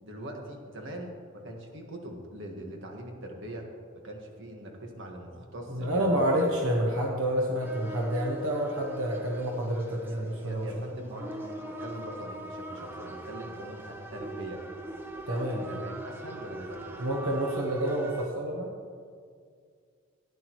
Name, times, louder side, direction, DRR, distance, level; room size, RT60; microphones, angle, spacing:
voice 1, 0.0-3.7 4.0-6.4 10.1-14.7 15.6-17.0, right 1 dB, 65° right, 2 dB, 1.6 m, -42 dB
voice 2, 5.7-10.7 15.3-15.6 17.0-18.7, right 1 dB, 85° right, -1 dB, 1.2 m, -28 dB
sound 1, 7.6-18.3, right 2 dB, 10° right, 0.9 m, -41 dB
15.5 x 10.0 x 3.1 m, 2.1 s
head